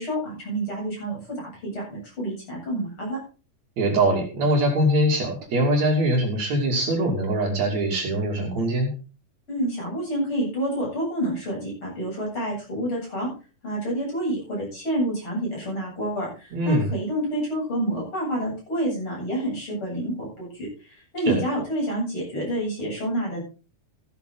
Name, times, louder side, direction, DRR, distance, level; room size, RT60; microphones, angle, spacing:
voice 1, 0.0-3.2 9.5-13.3 13.6-23.4, right 1 dB, 40° left, -3 dB, 9.0 m, -28 dB
voice 2, 3.8-8.9 16.5-16.9 21.3-21.4, right 1 dB, 60° right, 1 dB, 4.0 m, -22 dB
15.0 x 9.8 x 3.9 m, 0.34 s
omnidirectional pair, 3.5 m